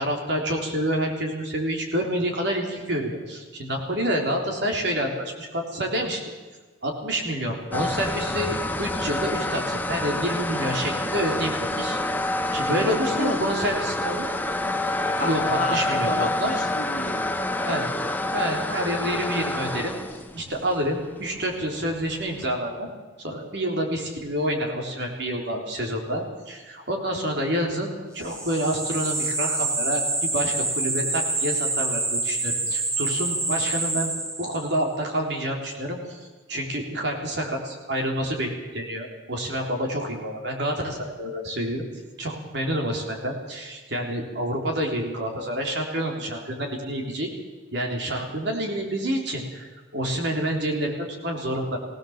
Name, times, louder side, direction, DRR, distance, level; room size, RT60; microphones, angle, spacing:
voice 1, 0.0-6.2 6.8-12.0 12.5-14.3 15.1-16.5 17.6-17.9 18.3-19.9 20.3-22.9 23.2-34.1 34.4-41.8 42.2-47.3 47.7-51.8, equal, 60° right, 1 dB, 3.7 m, -28 dB
sound 1, 7.7-22.5, left 1 dB, 10° left, 0.9 m, -28 dB
voice 2, 12.7-13.6 15.1-15.8 16.1-17.8, left 2 dB, 40° left, 4 dB, 1.9 m, -32 dB
sound 2, 28.2-34.7, right 2 dB, 15° right, 2.0 m, -27 dB
21.0 x 17.5 x 7.4 m, 1.3 s
head